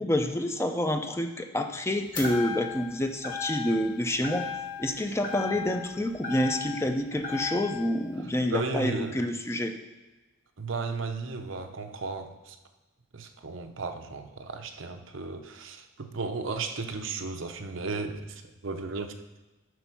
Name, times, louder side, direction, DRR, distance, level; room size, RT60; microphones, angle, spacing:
voice 1, 0.0-4.5 4.8-9.7, left 1 dB, 15° left, 5 dB, 0.5 m, -28 dB
sound 1, 2.1-2.9 3.2-3.9 4.2-4.9 5.2-6.9 7.2-7.9, left 6 dB, 40° left, 1.8 m, -35 dB
voice 2, 8.5-9.2 10.6-12.6 13.1-19.1, right 4 dB, 70° right, 6 dB, 0.8 m, -35 dB
11.0 x 4.4 x 6.0 m, 1.1 s
head